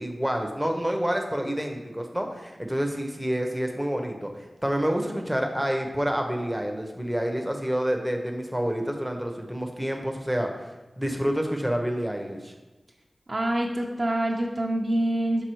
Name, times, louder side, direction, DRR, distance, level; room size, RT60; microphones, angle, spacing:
voice 1, 0.0-4.3 4.6-10.7 11.0-12.5, equal, 5° right, 3 dB, 0.8 m, -28 dB
voice 2, 13.3-15.4, right 1 dB, 40° right, -1 dB, 0.7 m, -26 dB
6.2 x 3.7 x 4.6 m, 1.1 s
wide cardioid pair, 85°, 0 cm